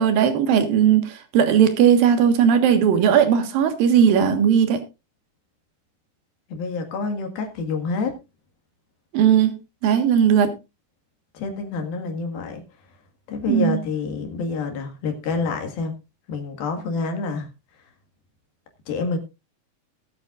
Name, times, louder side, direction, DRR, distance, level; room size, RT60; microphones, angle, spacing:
voice 1, 0.0-4.8 9.1-9.5 9.8-10.5 13.5-13.8, right 8 dB, 70° right, 7 dB, 3.2 m, -17 dB
voice 2, 6.5-8.1 11.3-12.6 13.3-15.9 16.3-17.5 18.9-19.2, left 4 dB, 75° left, 5 dB, 3.7 m, -27 dB
20.0 x 8.4 x 2.5 m, 0.26 s
omnidirectional pair, 4.3 m